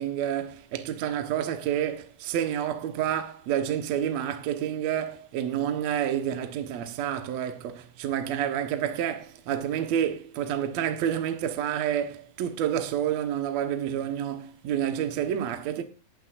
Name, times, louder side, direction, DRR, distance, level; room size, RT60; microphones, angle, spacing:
voice 1, 0.0-15.8, right 10 dB, 80° right, 1.5 m, -29 dB
20.5 x 8.4 x 2.6 m
omnidirectional pair, 5.1 m